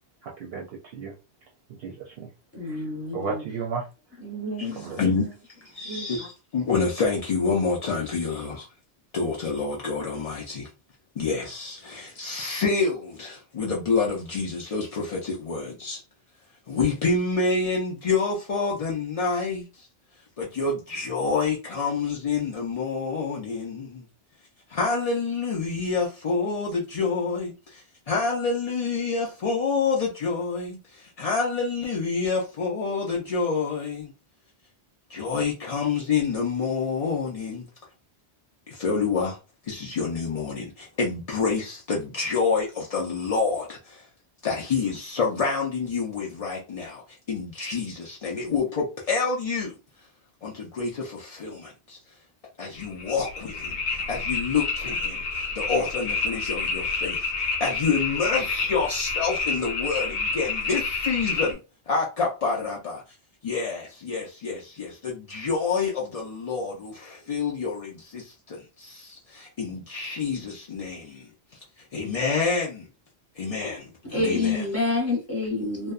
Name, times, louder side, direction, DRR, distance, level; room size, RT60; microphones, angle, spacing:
voice 1, 0.2-1.1 1.8-2.3 2.6-2.8 3.1-3.9 4.7-5.1, right 5 dB, 65° right, 0.7 m, -34 dB
voice 2, 2.5-3.4 4.2-5.1 5.9-6.0 74.1-75.9, left 3 dB, 15° left, 0.8 m, -28 dB
voice 3, 4.6-5.3 5.7-6.2 6.5-8.7 9.1-10.7 11.2-16.0 16.7-19.9 20.4-24.0 24.7-34.1 35.1-37.7 38.7-39.4 39.7-44.1 44.4-49.8 50.4-52.0 52.6-57.3 57.6-61.6 61.9-63.0 63.4-71.3 71.8-72.9 73.4-73.8 74.1-74.6, left 4 dB, 55° left, 0.4 m, -28 dB
sound 1, 52.8-61.5, left 4 dB, 75° left, 0.9 m, -29 dB
2.6 x 2.1 x 2.3 m
omnidirectional pair, 1.2 m